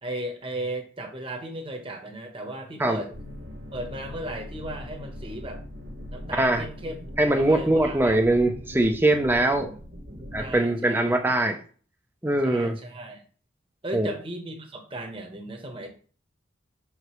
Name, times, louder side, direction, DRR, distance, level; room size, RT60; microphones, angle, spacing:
voice 1, 0.0-3.1 3.7-5.6 6.1-8.1 10.4-11.4 12.4-13.2 13.8-15.9, right 1 dB, 25° right, 1.1 m, -36 dB
sound 1, 3.1-10.6, left 1 dB, 65° right, 1.1 m, -41 dB
voice 2, 7.2-9.7 10.3-11.6 12.2-12.7 13.9-14.1, right 1 dB, 10° right, 0.6 m, -22 dB
6.3 x 4.9 x 3.1 m
head